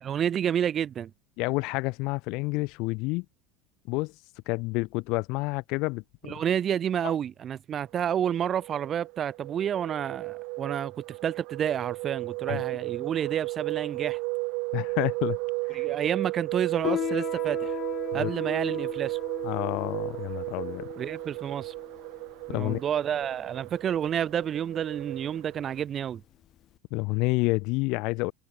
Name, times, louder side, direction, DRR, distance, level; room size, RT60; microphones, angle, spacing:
voice 1, 0.0-1.1 6.2-10.9 11.2-14.2 15.7-17.7 18.1-19.2 21.0-21.7 22.5-26.2, right 9 dB, 40° right, 1.3 m, -29 dB
voice 2, 1.4-3.2 3.9-4.1 4.5-6.4 7.0-7.1 12.5-12.6 14.7-15.4 15.7-15.8 18.1-18.3 19.4-20.9 22.5-22.8 26.9-28.3, left 25 dB, 65° left, 1.5 m, -29 dB
sound 1, 8.2-25.8, right 29 dB, 65° right, 3.7 m, -34 dB
Piano, 16.8-26.8, left 12 dB, 50° left, 1.5 m, -38 dB
hypercardioid pair, 90°, 0 cm